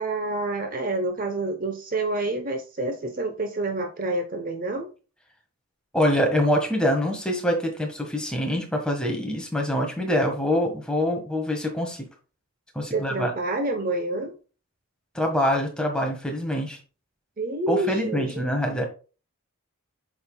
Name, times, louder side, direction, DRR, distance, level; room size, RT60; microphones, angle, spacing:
voice 1, 0.0-4.9 12.9-14.4 17.4-18.5, right 2 dB, 40° right, 5 dB, 0.9 m, -28 dB
voice 2, 5.9-12.1 12.7-13.3 15.1-16.8 17.7-18.9, equal, 5° left, 1 dB, 1.5 m, -25 dB
8.0 x 6.0 x 2.3 m, 0.34 s
head